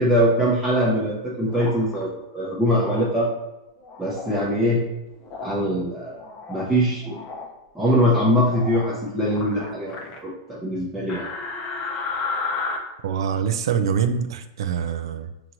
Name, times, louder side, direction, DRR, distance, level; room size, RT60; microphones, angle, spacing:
voice 1, 0.0-3.3 4.0-4.8 5.4-6.2 6.5-7.2 7.7-11.3, equal, 5° right, -8 dB, 0.7 m, -22 dB
sound 1, 1.5-2.0 2.8-3.1 3.8-4.4 5.2-5.7 6.1-6.7 7.0-7.5 8.5-8.9 9.3-10.2 11.1-12.8, left 4 dB, 30° left, 0.6 m, -32 dB
voice 2, 13.0-15.3, right 7 dB, 80° right, 8 dB, 0.3 m, -24 dB
5.8 x 3.0 x 2.6 m, 0.97 s
supercardioid pair, 155°, 3 cm